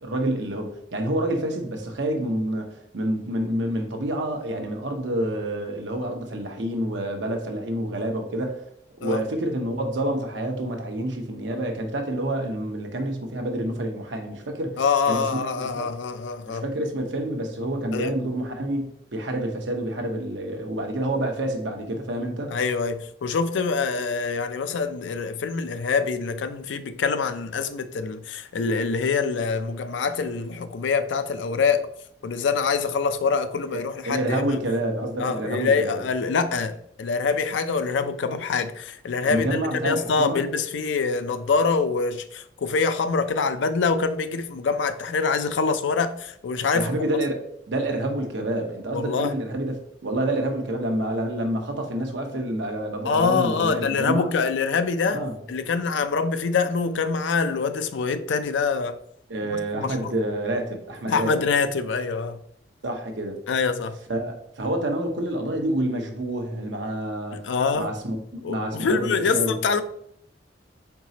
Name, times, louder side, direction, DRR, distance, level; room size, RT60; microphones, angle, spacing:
voice 1, 0.0-8.6 9.0-14.8 15.0-15.9 16.5-22.5 33.7-36.0 39.2-40.5 46.7-47.4 47.7-54.3 55.1-55.3 59.3-61.3 62.8-63.4 64.1-69.5, right 1 dB, 80° right, 0.9 m, -28 dB
voice 2, 14.8-16.6 17.9-18.1 22.5-31.9 32.2-34.6 35.2-47.1 48.9-49.3 53.0-55.2 55.5-59.0 59.5-60.1 61.1-62.4 63.5-64.0 67.3-67.9 68.4-69.8, left 5 dB, 80° left, 0.4 m, -25 dB
4.6 x 4.0 x 2.8 m
head